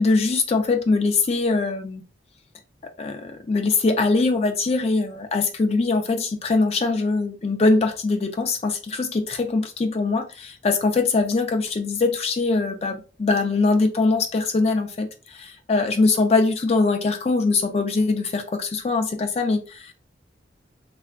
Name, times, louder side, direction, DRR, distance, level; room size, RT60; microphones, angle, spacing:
voice 1, 0.0-2.0 3.0-19.9, left 3 dB, 35° left, 0.3 m, -22 dB
3.3 x 2.3 x 2.2 m
head